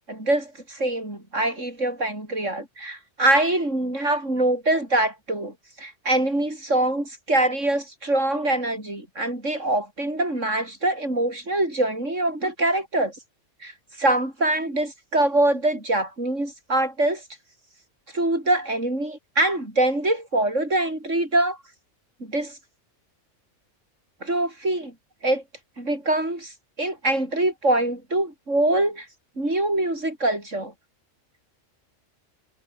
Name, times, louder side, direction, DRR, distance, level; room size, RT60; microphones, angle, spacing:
voice 1, 0.1-13.1 13.6-13.7 14.0-17.2 18.1-21.6 22.2-22.6 24.2-24.9 25.2-25.4 25.8-26.5 26.8-29.1 29.4-30.7, right 1 dB, 70° right, 8.5 m, -24 dB
omnidirectional pair, 1.3 m